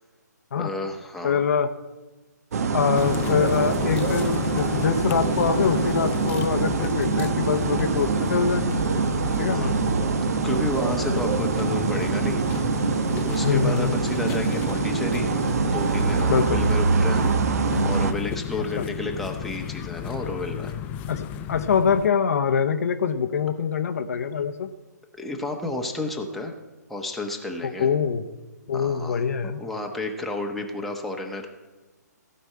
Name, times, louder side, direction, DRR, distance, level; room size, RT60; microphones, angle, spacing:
voice 1, 0.6-1.4 9.5-12.4 13.2-15.3 15.7-17.2 17.8-20.7 25.2-26.5 26.9-27.9 28.7-31.5, left 2 dB, ahead, 1 dB, 1.1 m, -31 dB
voice 2, 1.2-1.7 2.7-9.0 9.4-9.7 13.4-13.9 16.3-16.6 18.8-18.9 21.1-24.7 27.6-28.2 28.7-29.6, left 6 dB, 55° left, 9 dB, 0.9 m, -24 dB
sound 1, 2.5-18.1, right 5 dB, 55° right, 1.1 m, -24 dB
sound 2, 2.9-22.1, left 9 dB, 15° left, 0.5 m, -32 dB
16.0 x 5.4 x 8.5 m, 1.2 s
hypercardioid pair, 145°, 10 cm